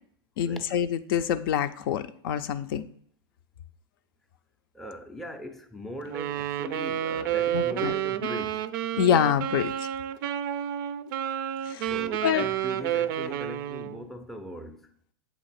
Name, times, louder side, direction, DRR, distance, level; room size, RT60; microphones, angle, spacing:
voice 1, 0.4-2.8 7.5-7.9 9.0-9.9 11.6-11.9 12.2-12.5, left 9 dB, 60° left, 0.5 m, -26 dB
voice 2, 4.7-8.7 11.9-14.9, left 1 dB, ahead, 0.5 m, -40 dB
Wind instrument woodwind instrument, 6.1-14.0, right 11 dB, 55° right, 0.4 m, -30 dB
7.9 x 2.9 x 4.1 m
hypercardioid pair, 125°, 13 cm